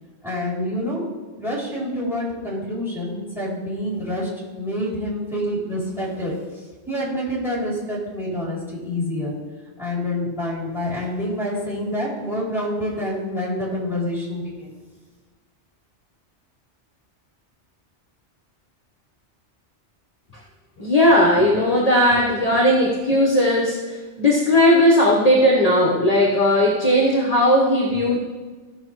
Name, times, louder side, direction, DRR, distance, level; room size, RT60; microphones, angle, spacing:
voice 1, 0.2-1.0 1.4-6.4 6.9-9.4 9.8-14.7, left 1 dB, ahead, -5 dB, 3.2 m, -27 dB
voice 2, 20.8-28.2, left 1 dB, 35° left, -3 dB, 1.3 m, -17 dB
15.5 x 6.4 x 3.2 m, 1.4 s
omnidirectional pair, 1.2 m